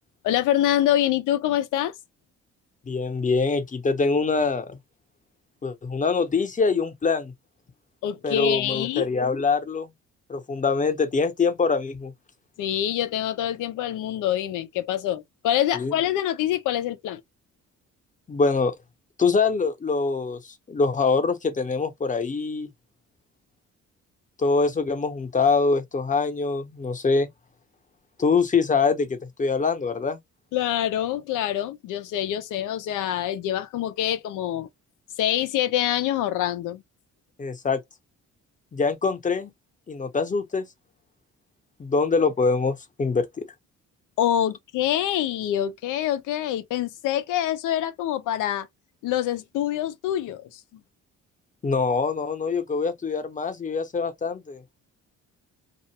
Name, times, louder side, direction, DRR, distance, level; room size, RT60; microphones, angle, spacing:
voice 1, 0.2-1.9 8.0-9.0 12.6-17.2 30.5-34.7 35.2-36.8 44.2-48.7 49.0-50.6, left 12 dB, 90° left, 0.6 m, -25 dB
voice 2, 2.9-4.8 5.6-7.3 8.2-9.9 10.3-12.1 15.7-15.9 18.3-18.7 19.2-22.7 24.4-27.3 28.2-30.2 37.4-37.8 38.7-39.5 39.9-40.7 41.8-43.5 51.6-54.6, left 4 dB, 25° left, 0.8 m, -24 dB
2.5 x 2.2 x 2.8 m
cardioid pair, 90°, 30 cm